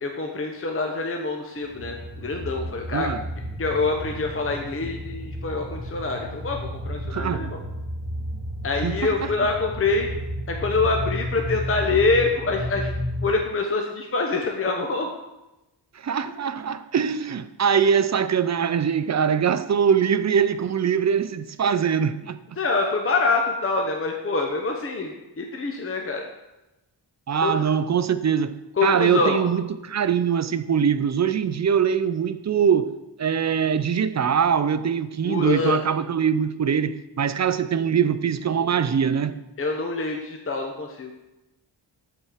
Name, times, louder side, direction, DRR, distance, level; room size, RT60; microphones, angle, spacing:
voice 1, 0.0-3.1 3.6-6.6 6.8-7.6 8.6-10.1 10.5-12.9 13.2-15.1 22.6-25.1 25.4-26.2 27.3-27.6 28.8-29.4 35.2-35.8 39.6-41.1, left 3 dB, 30° left, 0.8 m, -25 dB
sound 1, 1.6-13.3, equal, 10° left, 2.4 m, -32 dB
voice 2, 7.1-7.5 8.7-9.3 15.9-22.4 27.3-39.4, right 7 dB, 40° right, 0.4 m, -23 dB
7.7 x 4.3 x 5.0 m
wide cardioid pair, 80°, 46 cm